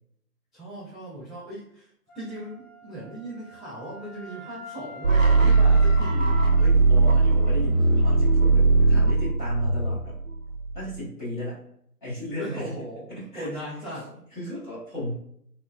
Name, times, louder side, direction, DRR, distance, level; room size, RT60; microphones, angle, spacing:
voice 1, 0.5-6.4 12.4-13.1 13.3-14.3, right 1 dB, ahead, -13 dB, 0.4 m, -38 dB
Wind instrument woodwind instrument, 2.1-6.8, equal, 65° left, 1.0 m, -44 dB
sound 1, 5.0-11.0, right 3 dB, 55° right, 0.5 m, -19 dB
voice 2, 6.6-10.2 10.7-11.6 12.0-12.7 13.1-13.5 14.3-15.1, left 1 dB, 30° left, -10 dB, 1.3 m, -34 dB
3.1 x 2.0 x 2.2 m, 0.69 s
figure-of-eight pair, 165°, 48 cm